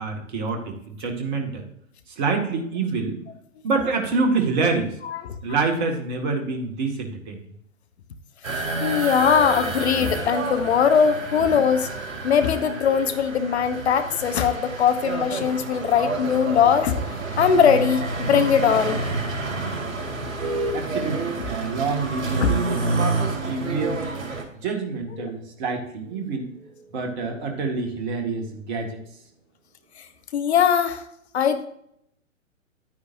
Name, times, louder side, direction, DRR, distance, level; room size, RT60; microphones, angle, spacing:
voice 1, 0.0-1.7 2.1-3.2 3.6-5.0 5.4-7.5 19.6-19.7 20.2-20.3 20.7-24.0 24.5-26.5 26.9-29.0, right 4 dB, 35° right, 3 dB, 2.1 m, -27 dB
sound 1, 8.4-24.4, right 3 dB, 65° right, 4.0 m, -29 dB
voice 2, 8.5-11.9 12.2-19.0 22.4-22.5 25.2-25.3 30.3-31.0 31.3-31.7, left 7 dB, 50° left, 10 dB, 1.1 m, -21 dB
sound 2, 20.4-30.3, equal, 20° right, 1.8 m, -40 dB
11.0 x 9.4 x 2.7 m, 0.72 s
figure-of-eight pair, 125°, 40 cm